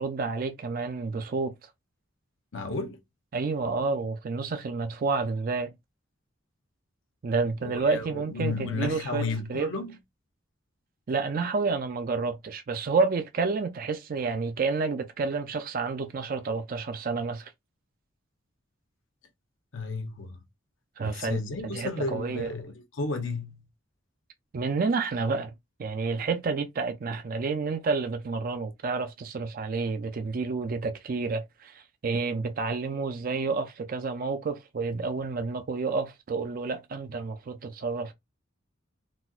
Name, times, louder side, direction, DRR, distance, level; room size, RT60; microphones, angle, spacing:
voice 1, 0.0-1.5 3.3-5.7 7.2-9.2 9.5-9.7 11.1-17.5 21.0-22.5 24.5-25.5 25.8-38.1, right 4 dB, 45° right, 0.4 m, -29 dB
voice 2, 2.5-3.0 7.6-9.9 19.7-20.4 21.0-23.6, left 3 dB, 70° left, 0.8 m, -33 dB
4.1 x 2.2 x 2.4 m
head